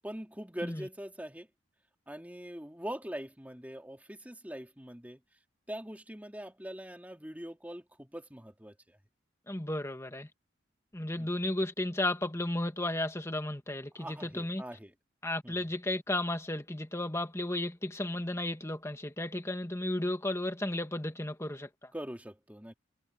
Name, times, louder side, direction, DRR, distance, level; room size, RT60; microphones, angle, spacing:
voice 1, 0.0-1.5 2.1-5.2 5.7-9.0 11.2-11.3 14.0-14.9 15.4-15.5 21.9-22.7, equal, 10° right, 3.1 m, -42 dB
voice 2, 9.5-10.3 10.9-14.6 15.2-21.9, left 1 dB, 15° left, 1.8 m, -34 dB
head